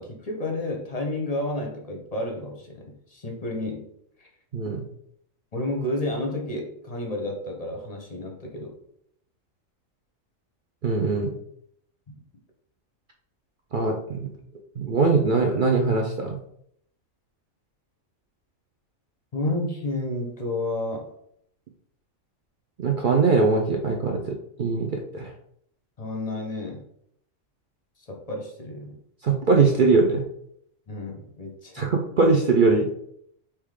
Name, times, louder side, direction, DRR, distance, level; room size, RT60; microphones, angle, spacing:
voice 1, 0.0-3.9 4.2-4.3 5.5-8.7 19.3-21.1 26.0-26.8 28.0-29.0 30.9-31.9, left 1 dB, 35° left, 1 dB, 0.7 m, -31 dB
voice 2, 4.5-4.8 10.8-11.3 13.7-14.3 14.8-16.4 22.8-25.3 29.2-30.2 31.7-32.9, right 4 dB, 60° right, 1 dB, 0.5 m, -21 dB
3.7 x 2.9 x 4.8 m, 0.70 s
omnidirectional pair, 1.4 m